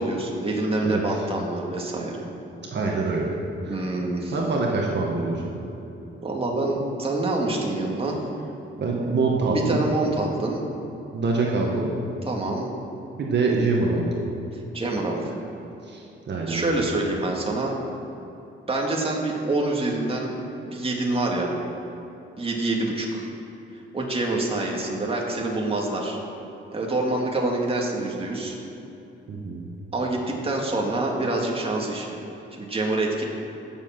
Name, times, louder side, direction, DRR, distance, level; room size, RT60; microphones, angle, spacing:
voice 1, 0.0-2.2 3.7-4.3 6.2-8.2 9.5-10.6 12.3-12.7 14.7-15.2 16.5-17.7 18.7-20.3 20.6-21.6 22.4-23.3 23.9-26.2 26.7-28.6 29.9-32.2 32.6-33.2, right 2 dB, 25° right, -1 dB, 2.2 m, -26 dB
voice 2, 0.8-1.2 2.7-3.4 3.6-3.7 4.3-5.4 8.8-9.9 11.1-11.9 13.2-14.2 15.9-16.8 29.3-29.7, right 3 dB, 55° right, -2 dB, 1.7 m, -25 dB
15.0 x 7.5 x 6.0 m, 2.9 s
cardioid pair, 100°, 21 cm